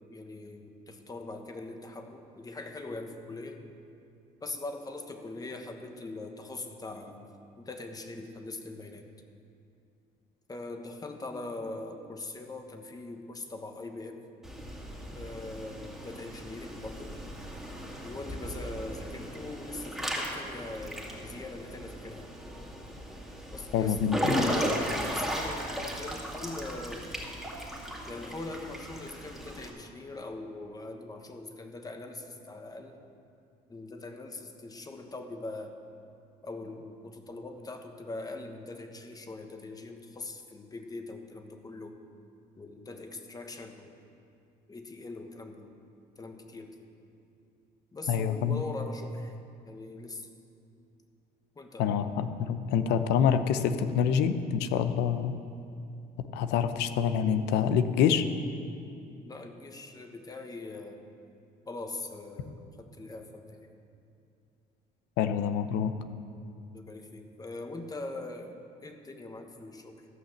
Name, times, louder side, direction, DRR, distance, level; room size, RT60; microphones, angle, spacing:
voice 1, 0.1-3.6 4.4-7.3 7.6-9.0 10.5-14.2 15.1-17.2 18.0-22.3 23.5-27.1 28.1-33.0 33.7-35.8 36.4-41.9 42.6-43.9 44.7-45.7 46.2-46.8 47.9-49.3 49.6-50.3 51.5-51.9 59.2-61.0 61.6-63.7 66.6-70.1, left 2 dB, 20° left, 5 dB, 1.2 m, -42 dB
Water / Splash splatter / Drip, 14.4-29.7, equal, ahead, 2.0 m, -36 dB
voice 2, 23.7-24.3 48.1-48.6 51.8-55.3 56.3-58.3 65.2-65.9, left 8 dB, 85° left, 10 dB, 0.7 m, -26 dB
14.5 x 5.8 x 7.4 m, 2.6 s
cardioid pair, 110°, 17 cm